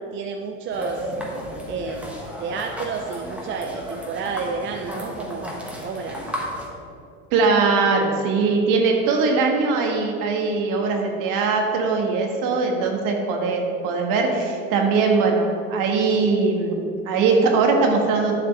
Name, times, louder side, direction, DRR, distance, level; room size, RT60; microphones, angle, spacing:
voice 1, 0.1-1.0 1.7-5.5 5.8-6.2, right 5 dB, 30° right, 3 dB, 0.6 m, -30 dB
sound 1, 0.7-6.7, equal, 5° right, 1.7 m, -33 dB
voice 2, 7.3-18.4, right 4 dB, 55° right, 2 dB, 1.7 m, -21 dB
11.0 x 6.7 x 3.3 m, 2.5 s
hypercardioid pair, 90°, 40 cm